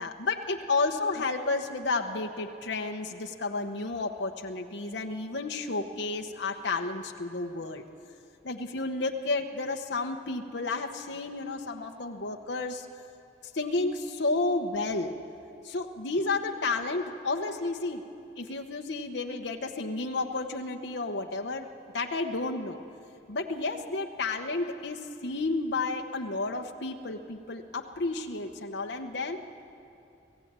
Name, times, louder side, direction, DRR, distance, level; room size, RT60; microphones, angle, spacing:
voice 1, 0.0-7.8 8.4-12.9 13.5-15.2 15.6-18.0 18.4-21.7 21.9-22.8 23.3-29.4, left 3 dB, 80° left, 3 dB, 1.1 m, -31 dB
25.0 x 15.5 x 8.9 m, 2.7 s
head